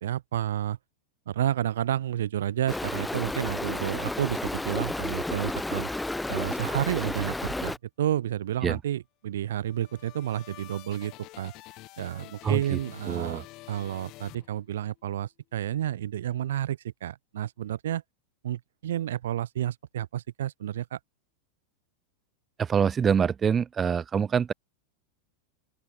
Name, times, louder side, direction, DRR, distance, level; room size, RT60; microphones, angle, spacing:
voice 1, 0.0-0.8 1.3-5.9 6.3-11.5 12.0-18.0 18.4-21.0, right 11 dB, 60° right, 0.4 m, -31 dB
Stream, 2.7-7.8, left 2 dB, 5° left, 0.5 m, -32 dB
sound 1, 9.4-15.0, left 20 dB, 40° left, 1.4 m, -48 dB
voice 2, 12.4-12.8 13.1-13.4 22.6-24.5, right 7 dB, 20° right, 0.9 m, -25 dB
open air
figure-of-eight pair, 90°, 0 cm